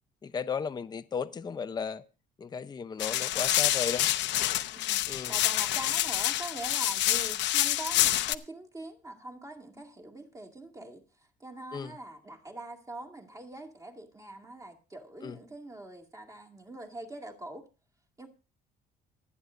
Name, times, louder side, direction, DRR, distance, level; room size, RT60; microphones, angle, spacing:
voice 1, 0.2-2.0 2.4-4.1 5.1-5.3 11.7-11.9 15.2-15.3, left 6 dB, 20° left, 0.6 m, -35 dB
sound 1, 3.0-8.3, left 14 dB, 80° left, 0.8 m, -27 dB
voice 2, 4.7-5.0 5.3-11.0 11.4-17.7 18.2-18.3, right 1 dB, 20° right, 2.2 m, -43 dB
26.5 x 9.5 x 2.5 m
cardioid pair, 150°, 19 cm